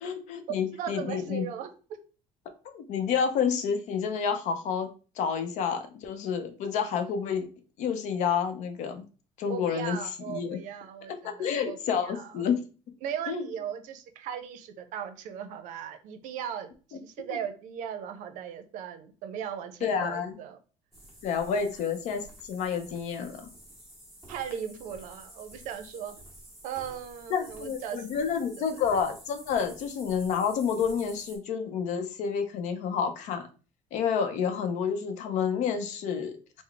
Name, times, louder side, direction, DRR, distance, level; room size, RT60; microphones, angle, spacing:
voice 1, 0.0-1.5 2.7-4.9 5.2-7.5 7.8-9.0 9.4-10.0 10.3-10.6 11.2-12.6 13.3-13.5 17.3-17.4 19.8-20.4 21.2-23.5 27.3-33.4 33.9-36.6, left 7 dB, 70° left, 8 dB, 0.6 m, -29 dB
voice 2, 0.6-1.7 9.5-12.5 13.0-20.6 24.3-26.1 26.6-28.2 28.6-28.7, right 8 dB, 75° right, 8 dB, 0.6 m, -38 dB
sound 1, 20.9-31.4, right 1 dB, ahead, 1.5 m, -50 dB
3.8 x 2.0 x 3.3 m, 0.37 s
cardioid pair, 135°, 13 cm